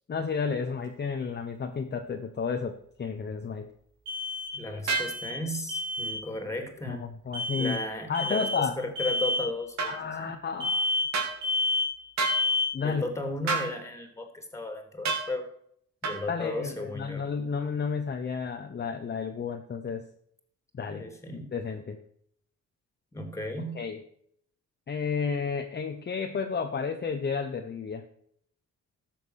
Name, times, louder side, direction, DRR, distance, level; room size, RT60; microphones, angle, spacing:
voice 1, 0.1-3.7 6.9-7.8 8.1-8.8 9.8-10.9 12.7-13.0 16.3-20.0 20.7-22.0 23.7-24.0 24.9-28.0, left 5 dB, 35° left, 5 dB, 1.1 m, -32 dB
sound 1, 0.8-0.9 4.1-5.4 5.7-6.2 7.3-7.8 8.1-8.6 9.0-9.5 10.6-11.2 11.4-12.0 12.2-12.8, left 2 dB, 85° right, 4.8 m, -29 dB
voice 2, 4.5-7.0 7.6-8.5 8.8-10.0 10.2-10.3 12.8-15.5 16.0-17.3 20.9-21.5 23.1-23.8, left 1 dB, 10° left, 6 dB, 3.0 m, -35 dB
sound 2, 4.9-5.1 9.8-9.9 11.1-11.3 12.2-12.4 13.5-13.7 15.0-15.3 16.0-16.2, right 4 dB, 65° right, 3.1 m, -28 dB
13.0 x 7.5 x 6.5 m, 0.66 s
cardioid pair, 90°, 30 cm